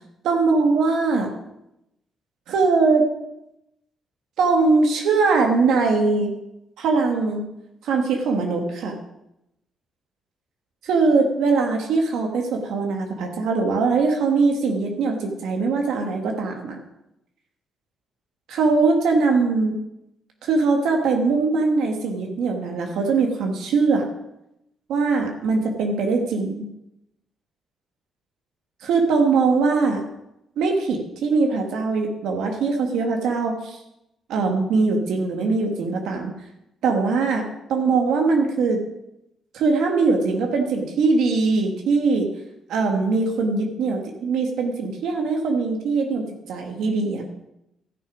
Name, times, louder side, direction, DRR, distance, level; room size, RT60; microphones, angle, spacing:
voice 1, 0.2-1.3 2.5-3.1 4.4-6.3 6.8-7.4 7.8-8.9 10.9-16.8 18.5-19.7 20.4-24.1 24.9-26.6 28.8-30.0 30.6-33.8 34.3-36.3 36.8-37.4 37.7-38.8 39.5-42.3 42.7-47.2, right 4 dB, 80° right, 2 dB, 1.6 m, -21 dB
14.0 x 6.4 x 5.2 m, 0.86 s
cardioid pair, 90°, 0 cm